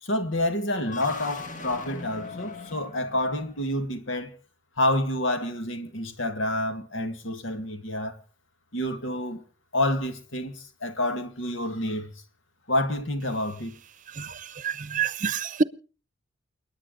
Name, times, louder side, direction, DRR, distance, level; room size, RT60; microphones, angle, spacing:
voice 1, 0.0-4.4 4.8-8.2 8.7-9.5 9.7-12.1 12.7-13.7, left 1 dB, 80° left, 2.2 m, -28 dB
sound 1, 0.8-3.8, left 4 dB, 40° left, 1.8 m, -40 dB
voice 2, 14.2-15.6, right 5 dB, 40° right, 0.7 m, -27 dB
29.0 x 10.0 x 4.0 m
head